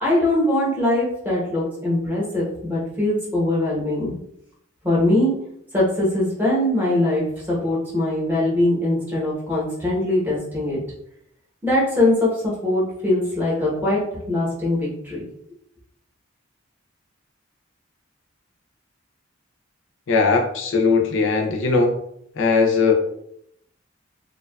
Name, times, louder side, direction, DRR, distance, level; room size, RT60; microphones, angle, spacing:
voice 1, 0.0-4.1 4.8-5.3 5.7-10.8 11.6-14.0 14.3-15.2, left 1 dB, 10° right, -6 dB, 0.8 m, -21 dB
voice 2, 20.1-21.9 22.4-22.9, left 4 dB, 70° left, 2 dB, 0.4 m, -19 dB
2.6 x 2.2 x 2.2 m, 0.74 s
head